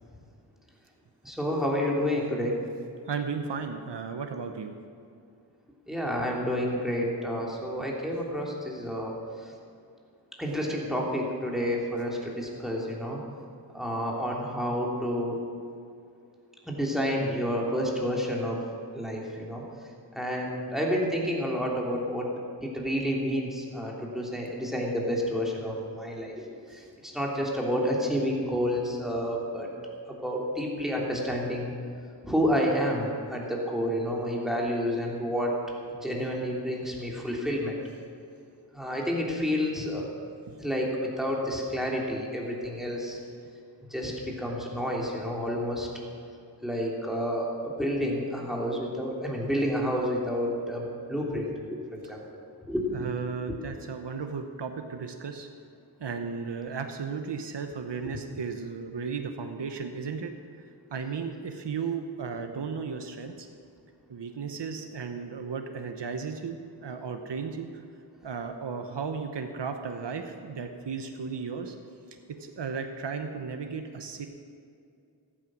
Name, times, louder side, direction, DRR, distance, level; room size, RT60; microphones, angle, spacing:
voice 1, 1.2-2.6 5.9-9.1 9.4-9.5 10.4-13.2 13.7-15.4 16.7-18.6 18.9-19.6 20.1-22.3 22.6-29.7 30.1-31.7 32.2-35.5 35.9-37.8 38.7-40.1 40.6-43.2 43.9-45.9 46.6-53.1 53.5-53.6, equal, ahead, -3 dB, 3.0 m, -29 dB
voice 2, 3.1-4.7 40.5-40.6 52.9-55.5 56.0-60.3 60.9-63.5 64.1-67.7 68.2-71.8 72.4-74.3, right 5 dB, 75° right, 6 dB, 1.0 m, -35 dB
14.5 x 8.8 x 6.3 m, 2.4 s
wide cardioid pair, 50°, 42 cm